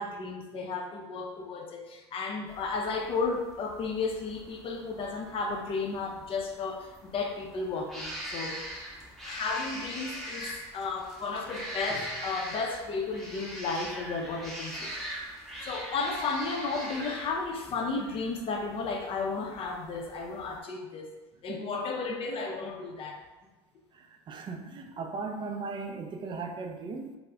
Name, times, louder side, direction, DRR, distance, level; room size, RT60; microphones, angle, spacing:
voice 1, 0.0-8.6 9.2-14.9 15.7-21.1 21.4-23.2, left 4 dB, 40° left, 1 dB, 0.5 m, -33 dB
sound 1, 2.5-20.6, equal, ahead, 0.7 m, -42 dB
voice 2, 23.9-27.2, right 4 dB, 35° right, 4 dB, 0.4 m, -37 dB
2.3 x 2.0 x 3.5 m, 1.1 s
hypercardioid pair, 90°, 14 cm